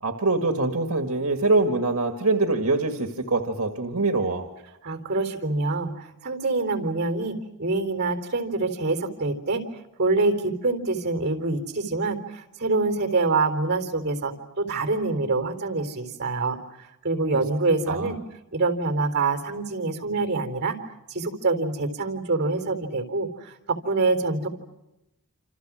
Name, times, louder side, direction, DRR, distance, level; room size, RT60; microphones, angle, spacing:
voice 1, 0.0-4.5 17.3-17.4 17.9-18.1, right 3 dB, 70° right, 5 dB, 1.9 m, -24 dB
voice 2, 4.8-5.9 6.2-9.6 10.0-16.6 17.0-18.2 18.5-20.8 21.1-24.5, right 3 dB, 50° right, 5 dB, 3.7 m, -25 dB
28.5 x 27.5 x 6.2 m, 0.93 s
head